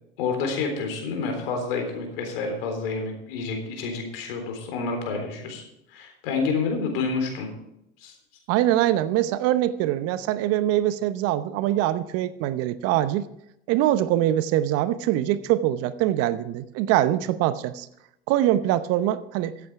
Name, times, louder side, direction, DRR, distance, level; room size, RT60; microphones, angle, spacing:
voice 1, 0.2-5.6 5.9-7.5 8.0-8.1, left 4 dB, 70° left, 4 dB, 3.8 m, -28 dB
voice 2, 8.5-13.3 13.7-17.9 18.3-19.7, right 13 dB, 55° right, 14 dB, 0.8 m, -23 dB
14.5 x 8.5 x 4.7 m, 0.81 s
hypercardioid pair, 85°, 29 cm